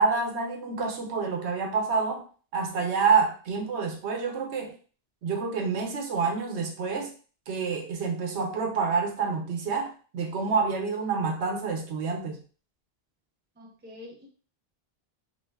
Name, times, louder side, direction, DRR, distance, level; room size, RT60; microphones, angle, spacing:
voice 1, 0.0-2.2 2.5-4.7 5.2-7.1 7.5-12.4, right 5 dB, 90° right, 3 dB, 0.9 m, -27 dB
voice 2, 13.6-14.3, left 2 dB, 15° right, -2 dB, 0.5 m, -46 dB
3.2 x 2.4 x 2.2 m, 0.39 s
omnidirectional pair, 1.1 m